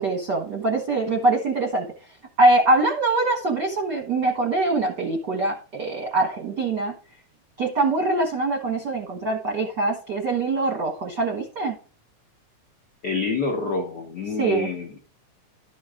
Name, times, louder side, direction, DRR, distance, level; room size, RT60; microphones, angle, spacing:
voice 1, 0.0-1.9 2.4-6.9 7.6-11.8 14.4-14.7, right 2 dB, 60° right, 1 dB, 1.1 m, -23 dB
voice 2, 13.0-15.0, left 4 dB, 90° left, 2 dB, 0.9 m, -27 dB
12.0 x 6.3 x 3.7 m, 0.36 s
omnidirectional pair, 3.8 m